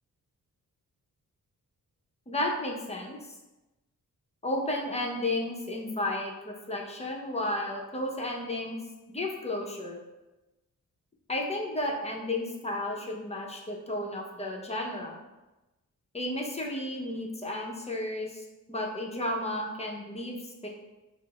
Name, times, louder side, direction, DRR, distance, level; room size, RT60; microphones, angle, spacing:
voice 1, 2.3-3.2 4.4-8.8 9.1-10.0 11.3-15.2 16.1-20.7, left 1 dB, 20° left, -1 dB, 0.7 m, -33 dB
5.9 x 2.0 x 2.3 m, 1.1 s
cardioid pair, 75°, 33 cm